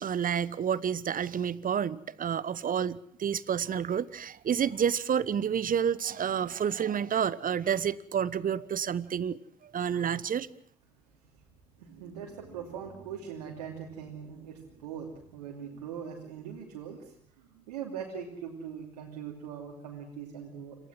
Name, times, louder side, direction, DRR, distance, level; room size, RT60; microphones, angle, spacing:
voice 1, 0.0-10.5, right 8 dB, 45° right, 1.2 m, -29 dB
voice 2, 11.8-20.8, right 7 dB, 80° right, 2.9 m, -41 dB
27.5 x 16.5 x 7.5 m
figure-of-eight pair, 50°, 20 cm